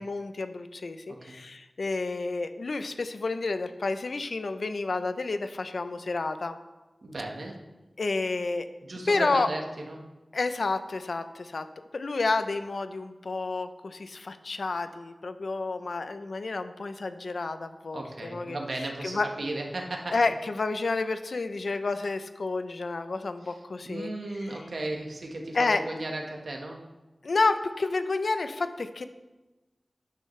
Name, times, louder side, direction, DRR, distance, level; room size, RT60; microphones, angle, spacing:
voice 1, 0.0-6.6 8.0-8.7 9.1-9.5 10.3-11.7 11.9-18.6 19.0-19.3 20.1-24.1 25.5-25.8 27.2-29.0, left 3 dB, 80° left, 10 dB, 0.6 m, -30 dB
voice 2, 7.0-7.6 8.8-10.0 17.9-20.2 23.4-26.8, right 2 dB, 75° right, 1 dB, 1.4 m, -35 dB
12.0 x 9.4 x 3.3 m, 1.1 s
wide cardioid pair, 80°, 0 cm